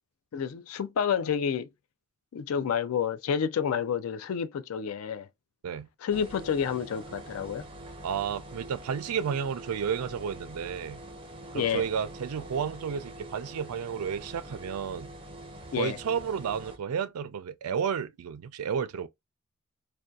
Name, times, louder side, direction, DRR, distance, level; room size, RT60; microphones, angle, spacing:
voice 1, 0.3-1.7 2.3-5.3 6.0-7.6 11.5-11.8 15.7-16.0, left 7 dB, 70° left, 0.3 m, -29 dB
sound 1, 6.1-16.8, right 1 dB, 25° right, 0.4 m, -45 dB
voice 2, 8.0-11.0 11.5-15.1 15.8-19.1, right 7 dB, 85° right, 0.4 m, -32 dB
2.6 x 2.2 x 2.2 m
head